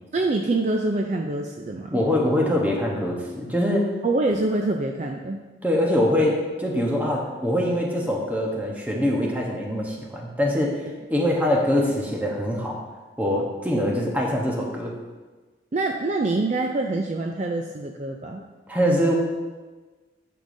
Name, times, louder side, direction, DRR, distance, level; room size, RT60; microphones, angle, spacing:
voice 1, 0.1-2.0 4.0-5.4 15.7-18.4, right 2 dB, 40° right, 3 dB, 0.4 m, -25 dB
voice 2, 1.9-3.9 5.6-10.8 11.1-12.8 13.2-14.9 18.7-19.1, left 1 dB, 10° right, -1 dB, 1.0 m, -23 dB
9.5 x 6.8 x 2.7 m, 1.3 s
head